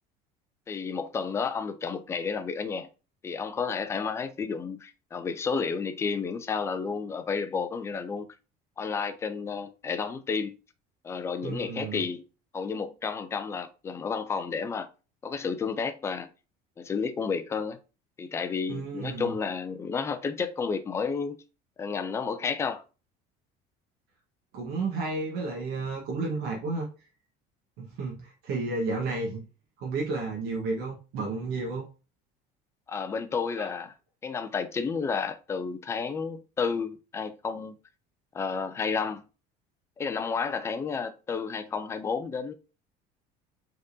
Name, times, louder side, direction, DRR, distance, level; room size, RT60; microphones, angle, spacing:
voice 1, 0.7-2.9 3.2-8.3 8.8-10.6 11.0-12.2 12.5-14.9 15.2-16.3 16.8-17.8 18.2-21.4 21.8-22.8 32.9-33.9 34.2-37.8 38.3-39.2 40.0-42.5, left 5 dB, 15° left, 0.3 m, -31 dB
voice 2, 11.4-12.0 18.7-19.3 24.5-26.9 27.8-29.4 29.8-31.8 33.6-33.7, right 3 dB, 60° right, 1.2 m, -32 dB
5.1 x 3.6 x 2.6 m
cardioid pair, 170°, 18 cm